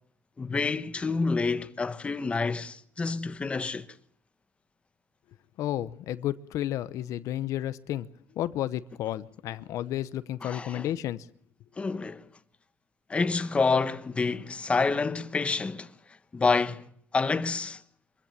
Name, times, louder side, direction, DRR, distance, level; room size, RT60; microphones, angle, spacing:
voice 1, 0.4-3.9 10.4-10.9 11.8-12.2 13.1-15.9 16.3-16.8 17.1-17.8, left 4 dB, 20° left, 1.1 m, -28 dB
voice 2, 5.6-8.1 8.3-11.3, left 12 dB, 80° left, 0.9 m, -32 dB
24.0 x 15.5 x 8.8 m
cardioid pair, 140°, 5 cm